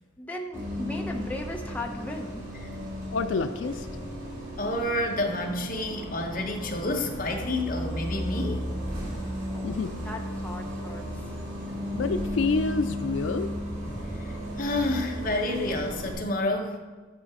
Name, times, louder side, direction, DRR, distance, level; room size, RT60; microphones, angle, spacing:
voice 1, 0.2-2.4 9.5-9.8 10.0-11.4, left 1 dB, 10° left, 1 dB, 0.7 m, -37 dB
Bus, 0.5-16.1, equal, 85° right, 3.0 m, -35 dB
voice 2, 3.1-3.9 9.6-9.9 11.9-13.5, left 4 dB, 85° left, 9 dB, 0.4 m, -28 dB
voice 3, 4.6-8.6 11.0-11.1 11.6-11.8 13.8-14.0 14.2-16.8, left 1 dB, 45° left, 1 dB, 1.2 m, -29 dB
10.5 x 4.8 x 4.9 m, 1.4 s
head